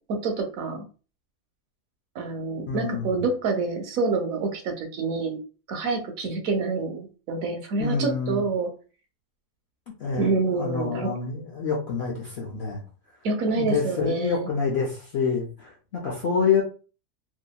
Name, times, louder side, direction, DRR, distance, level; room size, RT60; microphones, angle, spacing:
voice 1, 0.1-0.9 2.1-5.4 5.7-8.7 10.2-11.1 13.2-14.5, right 3 dB, 70° right, 5 dB, 0.9 m, -27 dB
voice 2, 2.7-3.1 7.8-8.4 10.0-12.8 13.5-16.6, left 5 dB, 65° left, -2 dB, 0.6 m, -27 dB
2.7 x 2.4 x 2.3 m, 0.36 s
omnidirectional pair, 1.6 m